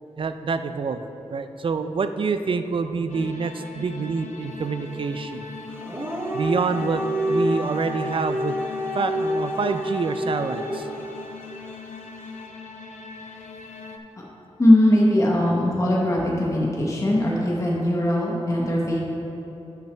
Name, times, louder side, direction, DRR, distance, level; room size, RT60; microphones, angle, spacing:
voice 1, 0.2-1.0 1.3-5.4 6.3-7.0 7.3-8.6 8.9-10.9, right 5 dB, 50° right, 9 dB, 0.4 m, -26 dB
sound 1, 3.1-14.0, left 4 dB, 90° left, 0.6 m, -40 dB
Dog, 5.8-10.9, equal, 20° right, 0.8 m, -28 dB
voice 2, 14.6-19.0, left 1 dB, 30° left, -4 dB, 1.0 m, -20 dB
11.5 x 5.9 x 3.4 m, 3.0 s
wide cardioid pair, 140°, 11 cm